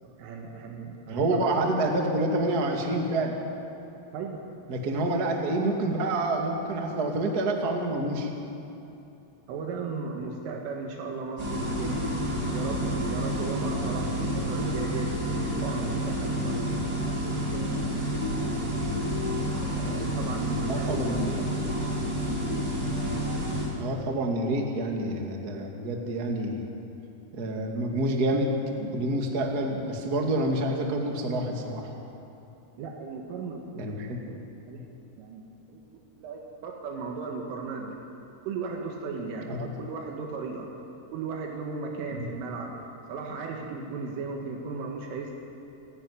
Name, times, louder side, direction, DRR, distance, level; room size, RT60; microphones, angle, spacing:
voice 1, 0.0-1.6 4.1-4.4 9.5-12.0 12.5-16.7 17.3-18.7 19.5-21.4 32.8-33.9 34.2-34.9 35.2-35.4 35.7-35.8 36.2-38.0 38.5-40.7 41.1-42.8 43.1-45.3, right 4 dB, 85° right, 0 dB, 4.3 m, -36 dB
voice 2, 1.1-3.3 4.7-8.3 20.7-21.4 23.8-26.7 27.3-31.9 33.7-34.2 39.5-39.7 42.0-42.3, right 1 dB, 50° right, 1 dB, 1.1 m, -28 dB
sound 1, 11.4-23.7, equal, 20° right, 6.4 m, -29 dB
28.5 x 11.0 x 9.7 m, 2.8 s
omnidirectional pair, 5.6 m